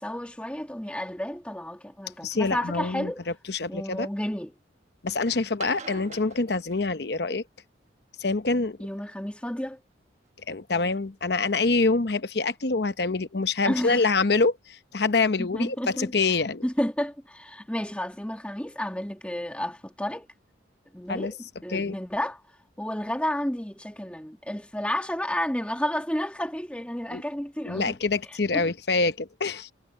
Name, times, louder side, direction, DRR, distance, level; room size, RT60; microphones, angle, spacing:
voice 1, 0.0-3.2 3.7-4.5 8.8-9.8 13.6-14.1 15.4-16.1 16.6-20.3 20.9-22.4 22.8-28.0 28.3-28.7, left 1 dB, 5° left, 1.9 m, -31 dB
voice 2, 2.2-3.1 3.5-4.1 5.0-7.4 8.2-8.8 10.5-16.6 21.1-21.3 21.7-21.9 27.1-27.2 27.7-29.7, left 3 dB, 60° left, 0.9 m, -26 dB
sound 1, 2.3-2.5 3.2-3.9 5.4-7.4 9.0-9.5 10.2-10.3 10.9-11.0 11.4-11.5 11.6-11.7, right 4 dB, 35° right, 1.3 m, -46 dB
head